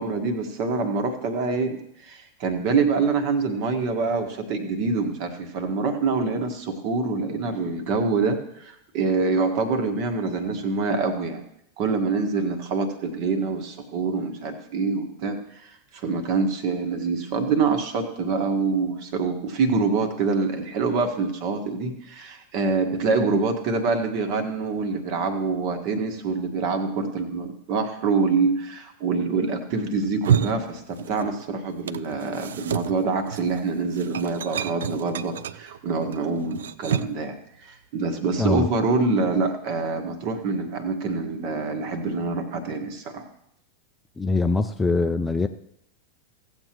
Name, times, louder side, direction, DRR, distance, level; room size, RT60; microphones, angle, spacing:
voice 1, 0.0-11.4 11.8-43.3, right 4 dB, 45° right, 6 dB, 1.5 m, -25 dB
sound 1, 30.0-31.4 31.7-37.3, right 9 dB, 65° right, 0.4 m, -29 dB
voice 2, 44.2-45.5, left 3 dB, 10° left, 8 dB, 0.5 m, -23 dB
17.0 x 7.8 x 3.1 m, 0.74 s
figure-of-eight pair, 90°, 0 cm